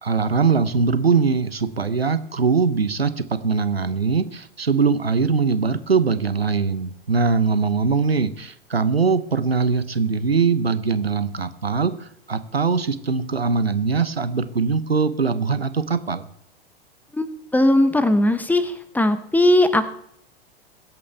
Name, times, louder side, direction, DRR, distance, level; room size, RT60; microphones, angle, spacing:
voice 1, 0.0-16.3, right 5 dB, 90° right, 13 dB, 0.9 m, -21 dB
voice 2, 17.1-19.9, left 1 dB, 5° left, 12 dB, 1.0 m, -19 dB
22.5 x 8.5 x 3.5 m, 0.73 s
figure-of-eight pair, 95°, 30 cm